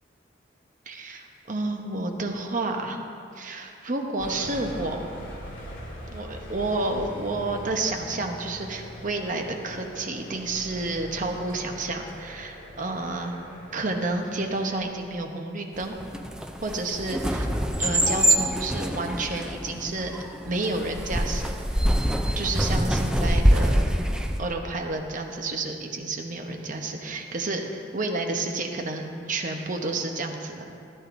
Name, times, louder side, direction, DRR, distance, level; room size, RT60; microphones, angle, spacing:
voice 1, 0.9-3.0 3.3-5.1 6.1-13.4 13.7-16.0 16.6-17.5 17.8-20.2 20.5-21.8 22.4-23.9 24.4-30.7, right 2 dB, 45° right, 3 dB, 0.9 m, -30 dB
sound 1, 4.2-14.8, equal, 65° left, 2.8 m, -42 dB
sound 2, 15.8-24.4, equal, 5° right, 0.4 m, -25 dB
14.0 x 12.0 x 2.6 m, 2.5 s
head